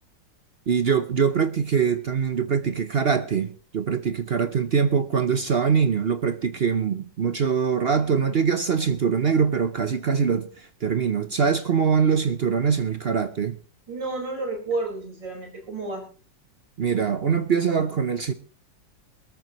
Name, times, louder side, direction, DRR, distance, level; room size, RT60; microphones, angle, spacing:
voice 1, 0.7-13.6 16.8-18.3, right 6 dB, 50° right, 0.7 m, -23 dB
voice 2, 13.9-16.0, right 3 dB, 85° right, 5.7 m, -31 dB
21.5 x 13.5 x 3.1 m
omnidirectional pair, 1.9 m